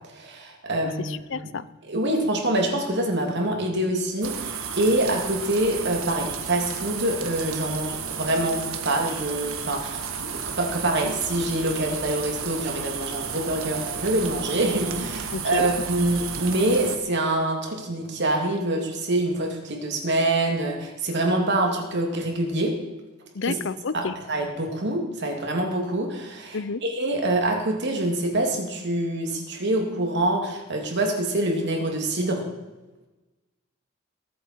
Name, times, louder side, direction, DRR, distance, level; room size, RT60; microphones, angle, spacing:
voice 1, 0.1-1.5 1.9-22.7 23.4-23.6 23.9-32.4, right 1 dB, 55° right, 2 dB, 2.8 m, -25 dB
voice 2, 1.0-1.6 15.3-15.7 23.3-24.1 26.5-26.8, left 4 dB, 60° left, 16 dB, 0.6 m, -30 dB
sound 1, 4.2-17.0, right 7 dB, 80° right, 1.6 m, -33 dB
21.0 x 9.2 x 4.6 m, 1.1 s
head